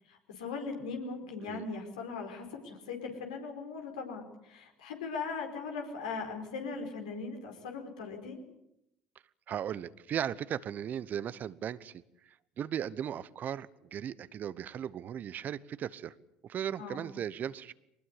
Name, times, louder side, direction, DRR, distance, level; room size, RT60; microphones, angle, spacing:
voice 1, 0.1-8.4 16.8-17.0, left 4 dB, 85° left, 3 dB, 4.7 m, -39 dB
voice 2, 9.5-16.1 16.4-17.7, right 9 dB, 50° right, 18 dB, 1.0 m, -37 dB
23.5 x 20.5 x 8.5 m, 0.81 s
hypercardioid pair, 65°, 4 cm